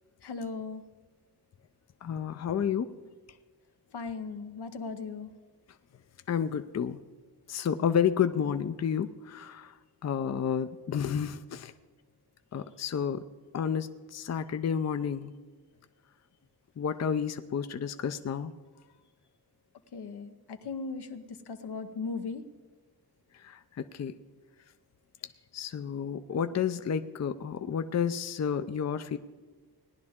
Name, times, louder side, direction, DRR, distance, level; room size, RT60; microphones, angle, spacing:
voice 1, 0.2-0.8 3.9-5.3 19.9-22.4, left 4 dB, 85° left, 7 dB, 1.0 m, -37 dB
voice 2, 2.0-2.9 6.3-7.0 7.5-9.8 10.0-11.7 12.5-13.2 13.5-15.3 16.8-18.5 23.3-24.1 25.5-29.2, left 7 dB, 45° left, 10 dB, 0.5 m, -31 dB
18.5 x 11.0 x 3.6 m, 1.4 s
wide cardioid pair, 100°, 39 cm